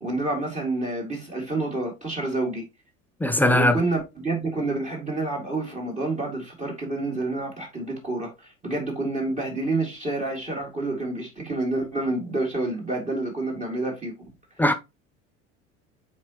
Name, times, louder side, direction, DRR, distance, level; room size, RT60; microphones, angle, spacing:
voice 1, 0.0-2.6 3.5-14.1, right 2 dB, 15° right, 2.1 m, -28 dB
voice 2, 3.2-3.7 14.6-14.7, left 1 dB, 5° left, 0.5 m, -19 dB
7.3 x 4.5 x 2.9 m
figure-of-eight pair, 70°, 40 cm